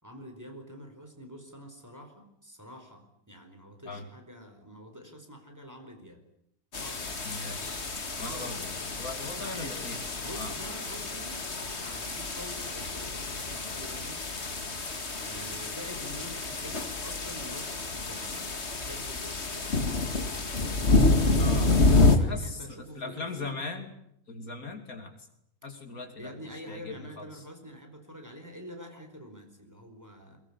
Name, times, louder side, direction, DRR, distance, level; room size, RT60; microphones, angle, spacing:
voice 1, 0.0-6.2 6.7-7.3 8.2-8.6 9.4-9.8 10.2-11.4 11.8-14.3 15.2-18.5 18.7-19.8 22.1-23.6 26.2-30.4, equal, 10° right, 4 dB, 4.6 m, -46 dB
sound 1, 6.7-22.2, left 3 dB, 50° left, 2.4 m, -28 dB
voice 2, 7.2-7.9 8.2-10.0 10.3-10.6 21.4-23.9 24.3-25.3 25.6-26.3 26.7-27.4, left 3 dB, 75° left, 6 dB, 3.4 m, -40 dB
22.5 x 20.0 x 10.0 m, 0.74 s
omnidirectional pair, 1.5 m